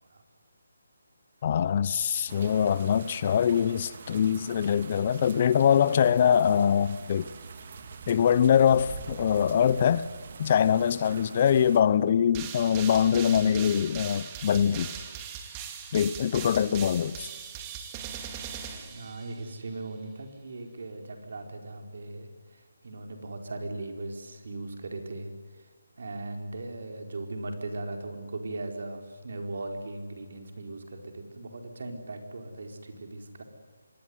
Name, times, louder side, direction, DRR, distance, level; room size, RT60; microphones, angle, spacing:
voice 1, 1.4-7.3 8.1-10.1 10.4-14.9 15.9-17.3, left 8 dB, 35° left, 0.8 m, -23 dB
sound 1, 2.3-11.8, right 5 dB, 45° right, 2.4 m, -44 dB
sound 2, 12.3-19.6, right 7 dB, 20° right, 2.4 m, -40 dB
voice 2, 18.9-25.3 25.6-25.7 26.0-33.4, right 2 dB, 60° right, 4.6 m, -38 dB
25.5 x 20.0 x 9.7 m
figure-of-eight pair, 160°, 0 cm